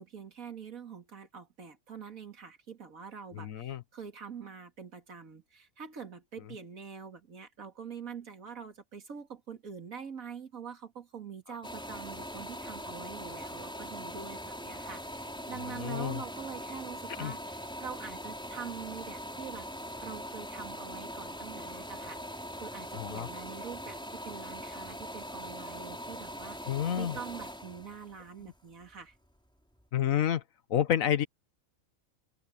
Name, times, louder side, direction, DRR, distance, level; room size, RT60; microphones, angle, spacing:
voice 1, 0.0-19.7 20.0-29.2, right 6 dB, 80° right, 2.7 m, -45 dB
voice 2, 3.3-3.8 15.6-16.2 17.2-17.3 22.9-23.3 26.7-27.2 29.9-30.4 30.7-31.3, left 10 dB, 75° left, 1.3 m, -29 dB
sound 1, 11.6-29.3 29.8-29.9, equal, 5° left, 4.5 m, -42 dB
omnidirectional pair, 1.4 m